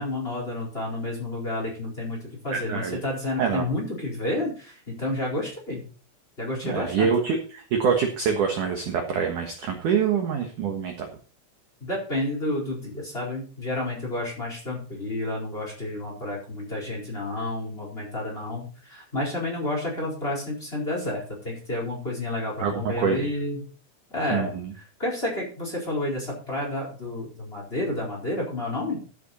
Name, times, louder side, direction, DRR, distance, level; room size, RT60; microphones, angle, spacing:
voice 1, 0.0-2.2 2.4-5.8 6.4-7.1 11.8-23.7 24.1-24.5 25.0-29.0, left 1 dB, 10° left, -1 dB, 4.0 m, -30 dB
voice 2, 2.5-3.0 3.4-3.6 6.6-11.1 22.6-23.3 24.3-24.7, right 6 dB, 70° right, 3 dB, 2.0 m, -25 dB
13.5 x 8.8 x 4.3 m, 0.40 s
omnidirectional pair, 5.7 m